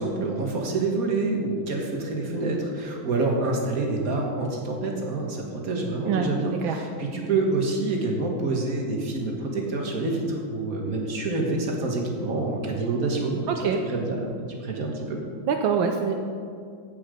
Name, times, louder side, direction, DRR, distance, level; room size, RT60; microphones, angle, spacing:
voice 1, 0.0-13.5 13.9-14.2 14.6-15.2, right 3 dB, 45° right, 0 dB, 1.8 m, -27 dB
voice 2, 13.5-13.8 15.4-16.1, right 6 dB, 75° right, 4 dB, 1.4 m, -24 dB
16.0 x 5.8 x 5.1 m, 2.3 s
omnidirectional pair, 2.3 m